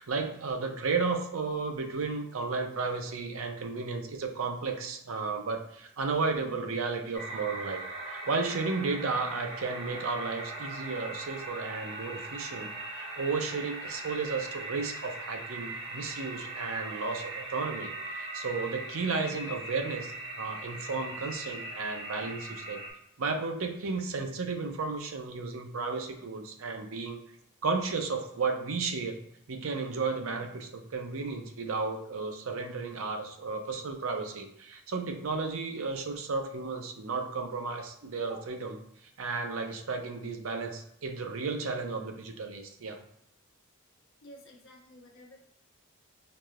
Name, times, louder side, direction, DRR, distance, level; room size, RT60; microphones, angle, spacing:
voice 1, 0.0-22.8 23.2-27.2 27.6-29.2 29.5-38.7 39.2-43.0, right 4 dB, 70° right, 5 dB, 0.6 m, -33 dB
sound 1, 7.1-22.9, right 2 dB, 25° right, 0.7 m, -40 dB
voice 2, 44.2-45.4, left 1 dB, 60° left, -1 dB, 1.0 m, -50 dB
4.7 x 2.7 x 2.4 m, 0.73 s
head